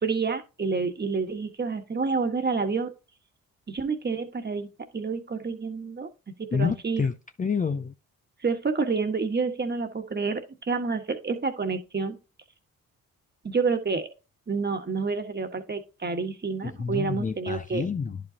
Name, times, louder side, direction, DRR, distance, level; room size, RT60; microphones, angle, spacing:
voice 1, 0.0-2.9 3.7-6.1 6.4-7.1 8.4-12.2 13.4-14.1 14.5-17.9, right 4 dB, 30° right, 1.4 m, -28 dB
voice 2, 6.5-7.9 16.6-18.2, left 5 dB, 25° left, 0.5 m, -28 dB
10.5 x 5.1 x 2.8 m
supercardioid pair, 60°, 34 cm